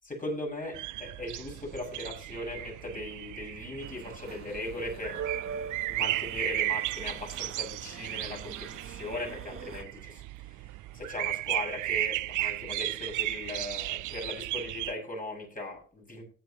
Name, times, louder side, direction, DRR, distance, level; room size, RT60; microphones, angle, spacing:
voice 1, 0.1-5.2 5.9-10.2 10.9-16.2, left 2 dB, 25° left, 0 dB, 6.9 m, -38 dB
sound 1, 0.7-14.9, right 18 dB, 60° right, 0.5 m, -35 dB
sound 2, 3.8-9.8, right 7 dB, 40° right, 1.1 m, -42 dB
17.0 x 9.3 x 2.9 m, 0.41 s
supercardioid pair, 65°, 34 cm